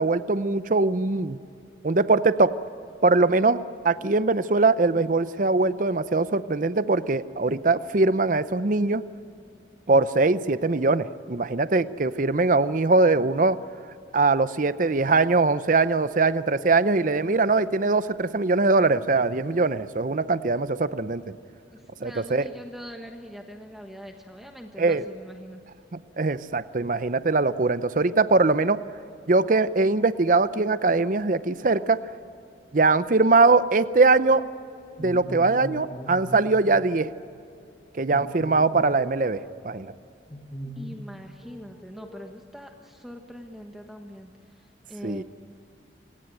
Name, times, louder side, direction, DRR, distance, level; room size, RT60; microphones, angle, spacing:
voice 1, 0.0-1.4 1.8-2.5 3.0-9.0 9.9-13.6 14.1-21.2 22.0-22.4 24.8-25.0 26.2-28.8 29.3-32.0 32.7-34.4 35.0-37.1 37.9-39.4 39.6-39.9 45.0-45.2, right 3 dB, 45° right, 14 dB, 0.7 m, -22 dB
voice 2, 21.7-25.6 40.7-45.2, equal, ahead, 3 dB, 1.3 m, -43 dB
sound 1, 35.0-36.6 37.1-37.3 38.1-39.6 40.3-41.1 41.4-42.3, equal, 25° left, 1.7 m, -39 dB
28.0 x 17.5 x 9.1 m, 2.7 s
head